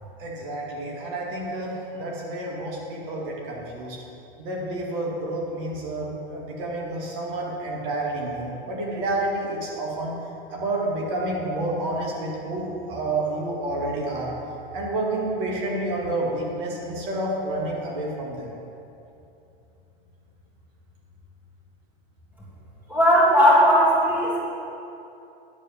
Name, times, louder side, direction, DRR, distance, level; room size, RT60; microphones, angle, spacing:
voice 1, 0.2-4.0 4.4-10.2 10.5-14.3 14.7-18.5, right 2 dB, 60° right, -3 dB, 2.3 m, -29 dB
voice 2, 22.9-24.4, equal, 5° right, -7 dB, 2.5 m, -17 dB
10.5 x 4.4 x 7.2 m, 2.8 s
hypercardioid pair, 110°, 31 cm